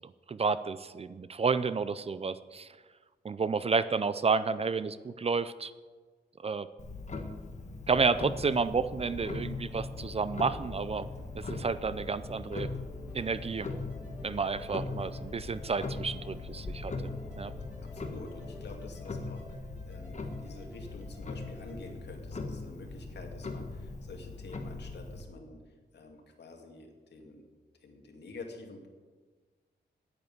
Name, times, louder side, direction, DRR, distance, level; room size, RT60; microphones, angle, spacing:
voice 1, 0.3-2.7 3.2-5.7 6.4-6.7 7.9-11.1 11.3-12.7 13.1-13.7 14.2-17.5, right 5 dB, 35° right, 15 dB, 0.5 m, -31 dB
Clock, 6.8-25.2, left 3 dB, 40° left, 1.6 m, -40 dB
sound 1, 8.1-18.8, left 3 dB, 20° left, 3.2 m, -48 dB
sound 2, 13.1-21.8, left 1 dB, 10° right, 5.2 m, -55 dB
voice 2, 17.8-25.6 25.9-27.5 27.8-28.9, left 3 dB, 75° left, 2 dB, 2.2 m, -48 dB
9.7 x 9.6 x 9.3 m, 1.4 s
wide cardioid pair, 145°, 18 cm